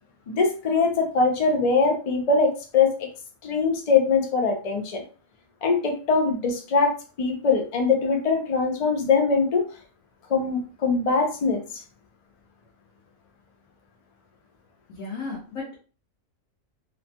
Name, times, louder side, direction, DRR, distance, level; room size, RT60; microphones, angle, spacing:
voice 1, 0.3-3.1 3.4-5.0 5.6-9.7 10.3-11.6, left 4 dB, 65° left, 4 dB, 0.3 m, -22 dB
voice 2, 14.9-15.8, left 3 dB, 90° left, -3 dB, 1.2 m, -34 dB
3.0 x 2.1 x 2.7 m, 0.37 s
omnidirectional pair, 1.4 m